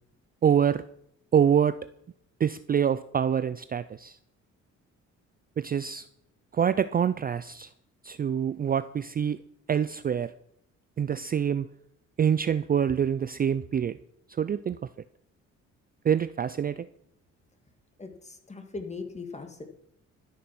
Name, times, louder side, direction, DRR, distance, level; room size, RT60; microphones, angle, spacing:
voice 1, 0.4-0.8 1.3-1.8 2.4-4.2 5.6-6.1 6.5-7.7 8.0-9.4 9.7-10.3 11.0-11.7 12.2-14.0 14.4-14.8 16.0-16.9, right 8 dB, 30° right, 14 dB, 0.4 m, -25 dB
voice 2, 18.0-19.6, left 3 dB, 20° left, 5 dB, 2.3 m, -39 dB
12.5 x 7.9 x 6.0 m, 0.73 s
cardioid pair, 90°, 30 cm